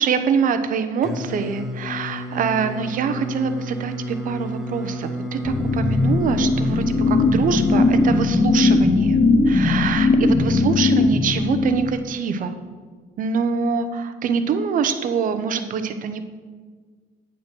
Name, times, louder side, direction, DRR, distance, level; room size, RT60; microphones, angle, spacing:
voice 1, 0.0-9.2 9.5-12.5 13.2-16.2, right 6 dB, 50° right, 9 dB, 0.8 m, -24 dB
Singing, 1.0-8.3, equal, ahead, 1.1 m, -31 dB
sound 1, 5.4-12.2, left 3 dB, 15° left, 0.4 m, -19 dB
8.9 x 5.1 x 6.1 m, 1.5 s
cardioid pair, 110°, 17 cm